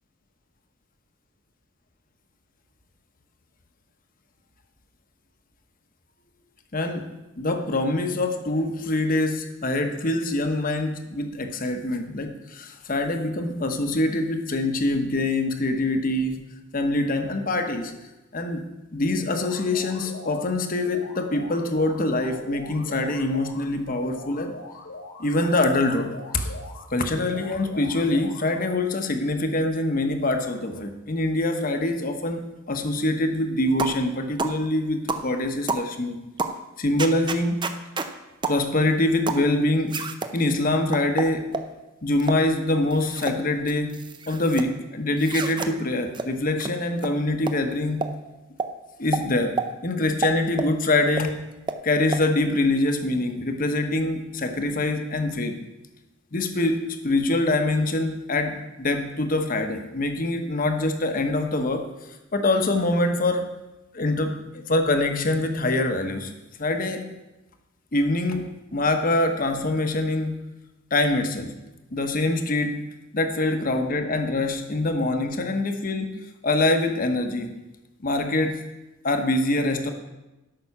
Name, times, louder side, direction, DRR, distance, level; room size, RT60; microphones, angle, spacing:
voice 1, 6.7-7.1 7.4-16.4 16.7-17.9 18.3-18.6 18.9-24.5 25.2-26.5 26.9-36.2 36.8-37.6 38.5-40.0 40.3-41.5 42.0-44.0 44.3-48.0 49.0-49.6 49.8-51.3 51.8-55.6 56.3-56.8 57.0-61.9 62.3-63.5 63.9-66.3 66.6-67.0 67.9-70.4 70.9-71.5 71.9-72.8 73.1-76.2 76.4-77.5 78.0-78.6 79.0-79.9, left 2 dB, 40° left, 6 dB, 1.1 m, -24 dB
sound 1, 19.3-20.5 20.9-23.7 24.1-26.9 27.3-28.8, left 3 dB, 60° left, 1.8 m, -41 dB
sound 2, 33.8-34.0 34.4-34.6 35.1-35.3 35.7-35.9 36.4-36.6 37.0-38.1 38.4-38.6 39.3-39.5 39.9-40.3 40.9-41.7 42.2-42.4 42.9-43.4 43.7-44.7 45.2-45.7 46.1-46.3 46.6-46.7 47.0-47.1 47.5-47.6 48.0-48.1 48.6-48.7 49.1-49.2 49.6-49.7 50.2-50.7 51.2-51.3 51.7-51.8 52.1-52.2, right 4 dB, 20° right, 0.6 m, -29 dB
12.5 x 6.0 x 5.9 m, 1.0 s
head